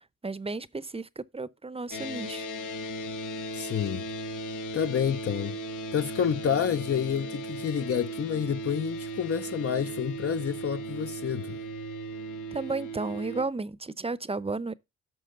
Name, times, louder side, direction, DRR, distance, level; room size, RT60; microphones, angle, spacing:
voice 1, 0.0-2.5 12.5-14.7, right 3 dB, 20° right, 0.7 m, -33 dB
sound 1, 1.9-13.4, right 2 dB, 65° left, 1.2 m, -37 dB
voice 2, 3.5-4.1 4.7-5.6 5.9-11.6, left 8 dB, 45° left, 0.7 m, -29 dB
12.0 x 6.4 x 3.7 m
cardioid pair, 60°, 33 cm